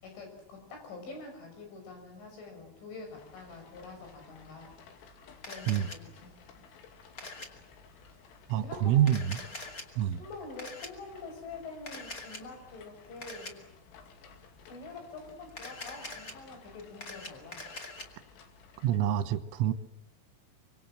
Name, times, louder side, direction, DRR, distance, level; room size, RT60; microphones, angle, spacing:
voice 1, 0.0-4.7 5.5-6.3 8.6-9.1 9.3-9.4 10.2-13.6 14.7-17.6, left 3 dB, 70° left, 4 dB, 8.3 m, -46 dB
sound 1, 3.1-19.0, left 5 dB, 90° left, 5.0 m, -56 dB
Camera, 5.4-6.0 7.2-7.5 9.0-9.8 10.6-10.9 11.9-12.4 13.2-13.5 15.5-16.3 16.8-18.0, left 2 dB, 30° left, 1.6 m, -43 dB
voice 2, 8.5-9.4 10.0-10.2 18.8-19.7, right 10 dB, 80° right, 11 dB, 3.6 m, -27 dB
25.5 x 25.0 x 7.6 m, 0.79 s
omnidirectional pair, 5.7 m